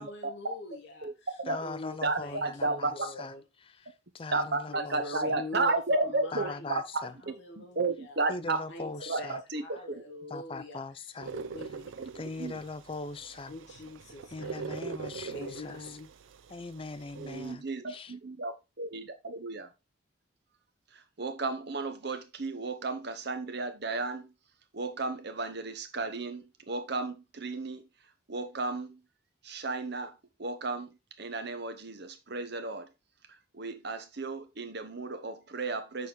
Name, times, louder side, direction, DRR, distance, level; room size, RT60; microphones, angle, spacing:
voice 1, 0.0-3.4 4.4-5.7 6.0-6.8 7.2-11.9 13.5-14.8 15.3-16.1, left 1 dB, 55° left, 1.1 m, -44 dB
voice 2, 1.5-3.3 3.8-5.4 6.3-7.1 8.3-9.4 10.3-11.3 12.1-13.6 14.3-16.0 16.5-18.1, left 3 dB, 25° left, 0.4 m, -41 dB
voice 3, 2.0-2.8 4.3-6.8 7.3-8.6 9.1-9.2 9.5-9.8 12.4-12.6 17.2-19.7 21.2-24.3 24.7-27.8 28.3-29.0 29.4-30.1 30.4-30.9 31.2-32.9 33.6-36.1, right 3 dB, 55° right, 0.9 m, -33 dB
sound 1, 11.2-17.5, right 5 dB, 70° right, 0.5 m, -43 dB
6.6 x 4.1 x 3.7 m
head